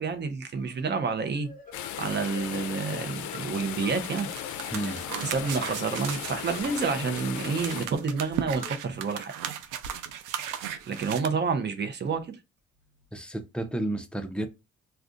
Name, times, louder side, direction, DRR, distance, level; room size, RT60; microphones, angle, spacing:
voice 1, 0.0-1.5 2.0-4.3 5.2-9.3 10.8-12.4, right 5 dB, 35° right, 0.7 m, -29 dB
sound 1, 0.5-8.8, left 3 dB, 25° left, 0.9 m, -51 dB
sound 2, 1.7-7.9, left 11 dB, 75° left, 0.4 m, -37 dB
sound 3, 4.2-11.3, right 10 dB, 90° right, 0.5 m, -36 dB
voice 2, 4.7-5.0 13.1-14.5, right 1 dB, 5° left, 0.5 m, -31 dB
2.4 x 2.3 x 3.7 m
cardioid pair, 90°, 30 cm